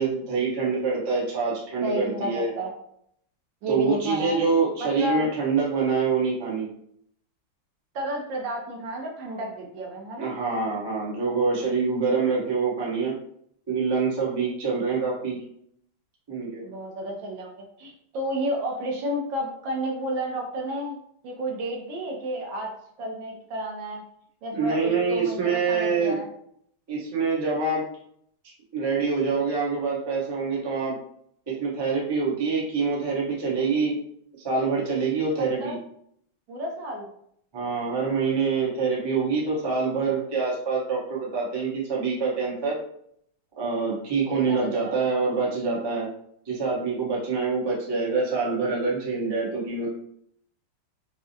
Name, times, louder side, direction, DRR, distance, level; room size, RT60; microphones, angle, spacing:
voice 1, 0.0-2.5 3.7-6.7 10.2-13.1 13.7-15.4 16.3-16.6 24.5-26.2 26.9-27.8 28.7-31.0 31.5-34.0 34.4-35.7 37.5-42.8 43.6-46.1 46.4-49.9, right 4 dB, 30° right, -6 dB, 0.5 m, -25 dB
voice 2, 1.8-2.7 3.6-5.3 7.9-10.4 16.6-21.0 21.2-22.7 23.0-24.0 24.4-26.3 35.6-35.8 36.5-37.1 44.5-45.0, right 1 dB, 70° right, 0 dB, 1.3 m, -31 dB
4.6 x 2.0 x 2.7 m, 0.68 s
omnidirectional pair, 2.3 m